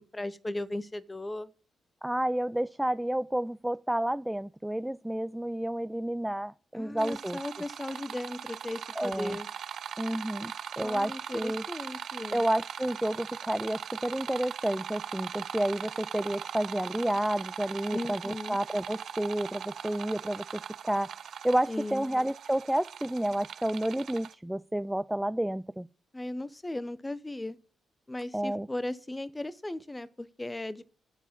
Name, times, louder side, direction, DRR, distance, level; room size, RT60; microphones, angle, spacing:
voice 1, 0.0-1.5 6.7-9.5 10.8-12.4 17.9-18.6 21.7-22.1 26.1-27.6 28.1-30.8, left 1 dB, 15° left, 0.9 m, -37 dB
voice 2, 2.0-7.4 9.0-9.4 10.0-11.6 12.3-21.1 21.4-25.9 28.3-28.7, right 1 dB, 5° right, 0.4 m, -30 dB
sound 1, 7.0-24.3, right 8 dB, 65° right, 0.5 m, -40 dB
10.5 x 4.8 x 7.3 m
supercardioid pair, 65°, 0 cm